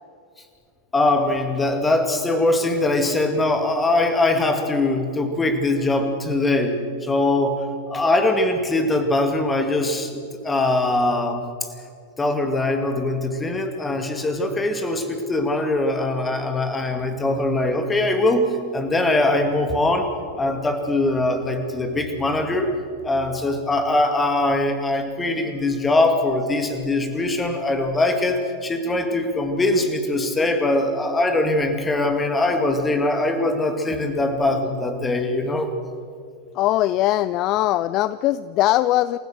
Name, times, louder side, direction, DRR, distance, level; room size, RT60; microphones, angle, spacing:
voice 1, 0.9-6.8 7.0-7.6 7.9-11.4 12.2-18.5 18.7-20.1 20.4-22.7 23.0-35.7, left 2 dB, 15° left, 6 dB, 2.5 m, -22 dB
voice 2, 36.5-39.2, left 15 dB, 40° left, 17 dB, 0.4 m, -20 dB
28.5 x 15.5 x 6.5 m, 2.3 s
figure-of-eight pair, 90°, 0 cm